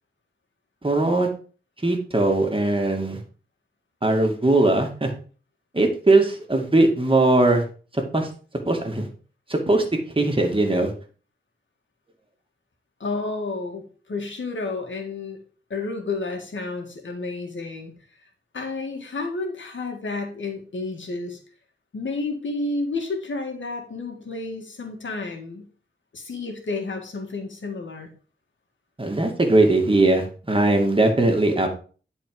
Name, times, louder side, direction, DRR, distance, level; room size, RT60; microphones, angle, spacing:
voice 1, 0.8-1.3 1.8-3.2 4.0-5.1 5.7-7.6 8.1-8.3 8.7-9.1 9.5-9.8 10.2-10.9 29.0-31.7, right 2 dB, 30° right, 2 dB, 2.2 m, -20 dB
voice 2, 13.0-15.4 15.7-17.9 18.5-21.4 21.9-25.7 26.1-28.1, left 3 dB, 85° left, 3 dB, 1.9 m, -31 dB
10.0 x 4.5 x 4.8 m, 0.39 s
wide cardioid pair, 65°, 19 cm